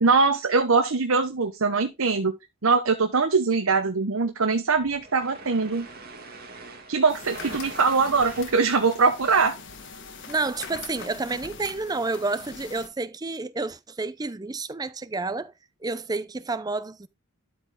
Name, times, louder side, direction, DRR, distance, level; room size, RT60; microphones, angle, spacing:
voice 1, 0.0-2.4 2.6-5.9 6.9-9.6, right 4 dB, 80° right, 1.0 m, -22 dB
sound 1, 4.7-10.3, right 3 dB, 45° right, 2.0 m, -44 dB
sound 2, 7.1-12.9, left 4 dB, 60° left, 1.4 m, -42 dB
voice 2, 10.3-15.5 15.8-17.1, right 3 dB, 20° right, 0.5 m, -30 dB
12.5 x 4.6 x 3.6 m
head